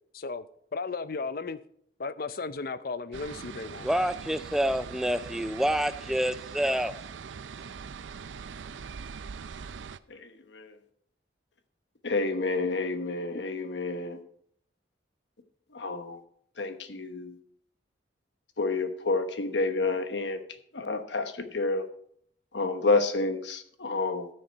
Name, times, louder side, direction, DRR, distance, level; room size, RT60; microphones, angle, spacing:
voice 1, 0.1-0.4 0.7-1.6 2.0-3.9, left 4 dB, 50° left, 0.6 m, -35 dB
sound 1, 3.1-10.0, right 6 dB, 85° right, 0.5 m, -42 dB
voice 2, 3.8-7.0, equal, ahead, 0.4 m, -27 dB
voice 3, 10.1-10.8 12.0-14.2 15.7-16.2 16.6-17.4 18.6-20.4 20.7-21.9 22.5-24.3, left 3 dB, 70° left, 1.1 m, -29 dB
14.0 x 6.5 x 4.5 m
head